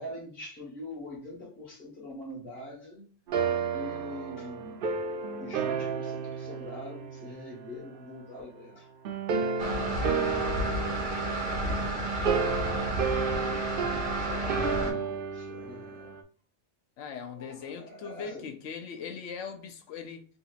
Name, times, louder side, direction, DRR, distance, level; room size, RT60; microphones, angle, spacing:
voice 1, 0.0-3.1 3.7-4.9 5.4-8.9 14.1-16.2 17.3-18.5, left 1 dB, 50° left, 1.8 m, -43 dB
sound 1, 3.3-7.9 9.0-16.2, right 5 dB, 60° right, 0.6 m, -32 dB
sound 2, 9.6-14.9, right 1 dB, 80° right, 1.7 m, -31 dB
voice 2, 17.0-20.2, left 6 dB, 80° left, 1.0 m, -40 dB
3.9 x 2.8 x 2.4 m
omnidirectional pair, 1.3 m